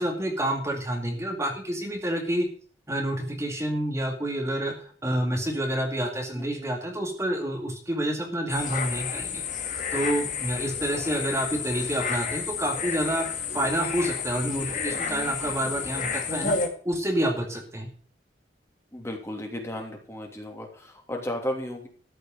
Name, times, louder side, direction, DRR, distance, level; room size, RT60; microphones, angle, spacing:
voice 1, 0.0-2.5 2.9-9.4 9.9-13.3 13.5-16.6 16.8-17.9, right 1 dB, 15° right, 1 dB, 2.3 m, -28 dB
voice 2, 6.3-6.8 18.9-21.9, left 1 dB, 15° left, 2 dB, 2.8 m, -34 dB
sound 1, 8.5-16.7, left 5 dB, 45° left, 2.2 m, -31 dB
14.0 x 6.7 x 7.7 m, 0.44 s
head